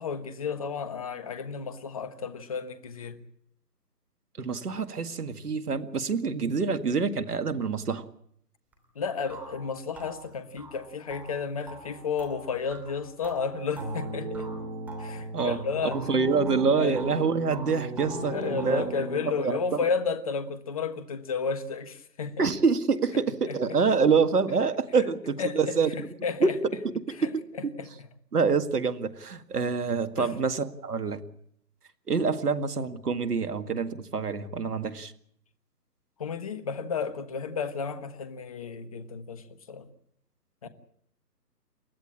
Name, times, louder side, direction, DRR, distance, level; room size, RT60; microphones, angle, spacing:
voice 1, 0.0-3.2 8.9-14.5 15.0-16.0 16.8-17.0 18.3-22.5 23.5-23.6 25.4-25.8 26.2-26.5 27.2-27.3 27.8-27.9 30.2-30.3 36.2-39.9 40.6-40.7, left 5 dB, 20° left, 11 dB, 1.3 m, -32 dB
voice 2, 4.4-8.1 15.3-18.9 19.3-19.6 22.4-25.9 26.4-27.7 28.3-31.2 32.1-35.1, right 5 dB, 65° right, 10 dB, 2.0 m, -26 dB
sound 1, 8.7-8.8 9.3-15.6 15.9-17.2 17.5-18.9, right 3 dB, 5° right, 3.0 m, -44 dB
sound 2, 13.8-19.3, right 2 dB, 35° right, 5.4 m, -36 dB
29.0 x 13.0 x 8.7 m, 0.68 s
figure-of-eight pair, 160°, 49 cm